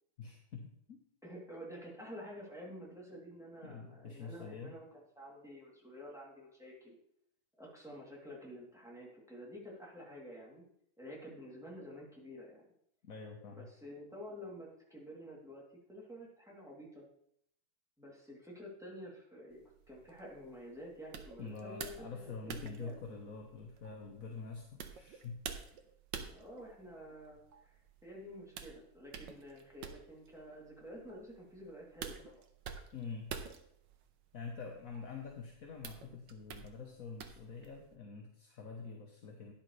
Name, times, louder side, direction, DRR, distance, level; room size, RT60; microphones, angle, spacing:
voice 1, 0.2-1.0 3.6-4.7 13.0-13.7 21.4-25.7 32.9-33.3 34.3-39.5, left 5 dB, 50° left, 1 dB, 1.2 m, -46 dB
voice 2, 1.2-7.0 7.6-10.6 11.0-12.7 13.5-17.0 18.0-19.6 19.9-22.1 22.4-23.0 26.2-32.3, equal, ahead, -4 dB, 2.8 m, -50 dB
sound 1, 19.5-37.9, right 7 dB, 65° right, 1.4 m, -50 dB
12.0 x 10.5 x 3.3 m, 0.72 s
omnidirectional pair, 2.4 m